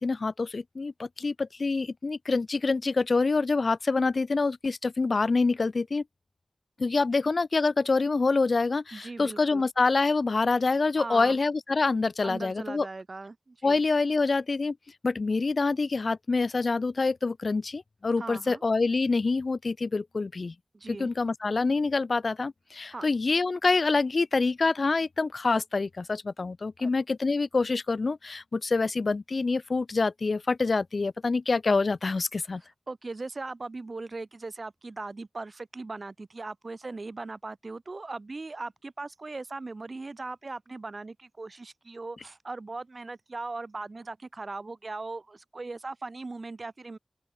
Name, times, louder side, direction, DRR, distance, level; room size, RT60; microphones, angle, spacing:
voice 1, 0.0-6.0 6.8-12.9 13.6-14.8 15.0-20.5 20.9-32.6, left 3 dB, 80° left, 0.4 m, -26 dB
voice 2, 8.9-9.7 11.0-11.4 12.2-13.8 18.2-18.6 20.7-21.1 22.9-23.1 26.8-26.9 32.9-47.0, right 3 dB, 65° right, 1.4 m, -39 dB
open air
wide cardioid pair, 65°, 0 cm